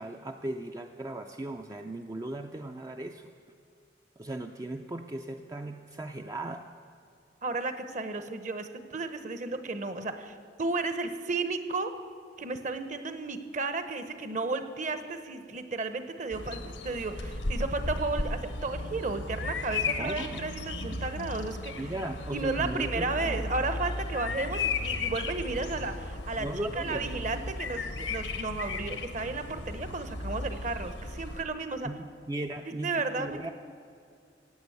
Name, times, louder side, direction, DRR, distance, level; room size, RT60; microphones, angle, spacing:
voice 1, 0.0-3.3 4.2-6.7 20.0-20.4 20.9-21.0 21.8-23.5 26.4-27.1 31.8-33.5, right 1 dB, 20° right, 5 dB, 0.4 m, -37 dB
voice 2, 7.4-11.9 12.4-21.9 22.3-26.5 26.8-31.9 32.8-33.5, right 3 dB, 40° right, 9 dB, 1.0 m, -33 dB
Bird vocalization bird call bird song, 16.3-31.4, left 3 dB, 90° left, 1.3 m, -35 dB
16.5 x 8.9 x 7.9 m, 2.4 s
head